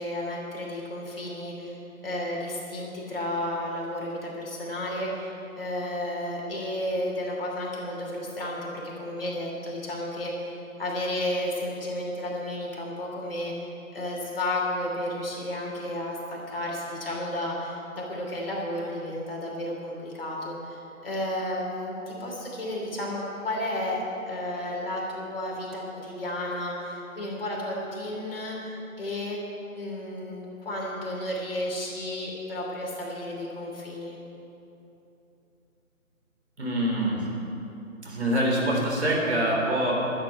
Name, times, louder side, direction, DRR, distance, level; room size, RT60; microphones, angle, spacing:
voice 1, 0.0-10.5 10.8-16.2 16.5-29.4 29.7-34.2, left 1 dB, 40° left, -3 dB, 2.9 m, -32 dB
voice 2, 36.6-37.3 38.0-39.9, right 1 dB, 50° right, -2 dB, 3.5 m, -25 dB
12.5 x 7.5 x 8.9 m, 2.9 s
figure-of-eight pair, 155°, 42 cm